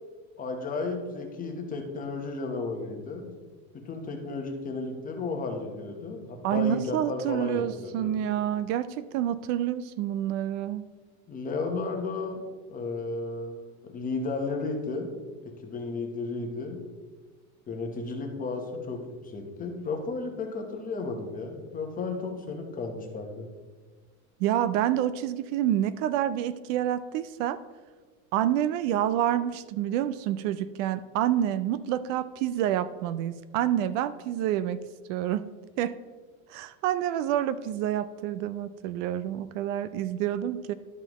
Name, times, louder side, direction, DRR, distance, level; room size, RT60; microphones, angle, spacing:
voice 1, 0.4-3.3 3.7-8.1 11.3-15.1 15.4-16.8 17.7-23.5, left 3 dB, 20° left, 3 dB, 0.9 m, -33 dB
voice 2, 6.4-10.8 24.4-27.6 28.3-34.8 35.1-35.5 35.8-35.9 36.5-40.7, right 11 dB, 65° right, 14 dB, 0.5 m, -28 dB
12.0 x 5.8 x 3.0 m, 1.4 s
supercardioid pair, 150°, 42 cm